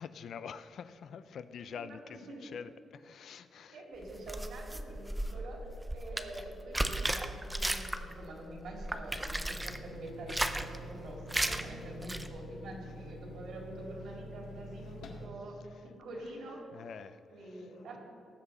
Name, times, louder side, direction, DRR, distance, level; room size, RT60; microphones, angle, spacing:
voice 1, 0.0-3.8 5.1-5.4 16.7-17.2, left 7 dB, 55° left, 13 dB, 0.5 m, -46 dB
voice 2, 1.7-2.4 3.7-5.7 5.9-16.7 17.3-18.0, right 1 dB, 65° right, -1 dB, 3.1 m, -46 dB
sound 1, 4.0-8.2 8.5-9.8 10.2-10.8 11.3-11.6 12.0-12.3, right 1 dB, 10° right, 0.5 m, -35 dB
sound 2, 9.6-15.3, left 1 dB, 75° left, 1.6 m, -47 dB
18.5 x 8.0 x 4.2 m, 2.8 s
wide cardioid pair, 180°, 0 cm